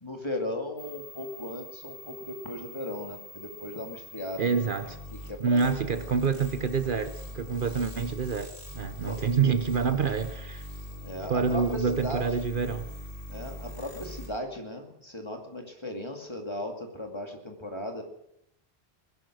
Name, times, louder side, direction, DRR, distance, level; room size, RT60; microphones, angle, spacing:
voice 1, 0.0-4.6 5.3-5.7 9.0-9.2 11.0-12.2 13.3-18.0, left 1 dB, 25° left, 2.4 m, -37 dB
sound 1, 0.8-14.3, left 1 dB, 75° left, 4.6 m, -42 dB
voice 2, 4.4-5.0 5.4-10.7 11.3-12.9, right 5 dB, 55° right, 0.9 m, -27 dB
20.0 x 11.5 x 6.2 m
omnidirectional pair, 1.1 m